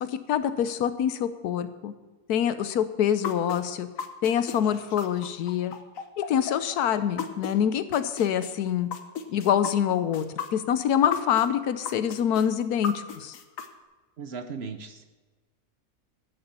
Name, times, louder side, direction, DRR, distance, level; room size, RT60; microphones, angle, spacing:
voice 1, 0.0-1.9 2.3-3.9 4.2-5.7 6.2-8.9 9.3-10.3 10.5-13.4, left 9 dB, 85° left, 12 dB, 1.3 m, -25 dB
sound 1, 3.2-7.5 7.9-11.5 11.8-13.7, left 7 dB, 65° left, 1.3 m, -35 dB
voice 2, 14.2-15.0, right 5 dB, 55° right, 8 dB, 0.9 m, -37 dB
14.0 x 6.9 x 6.9 m, 1.3 s
omnidirectional pair, 1.6 m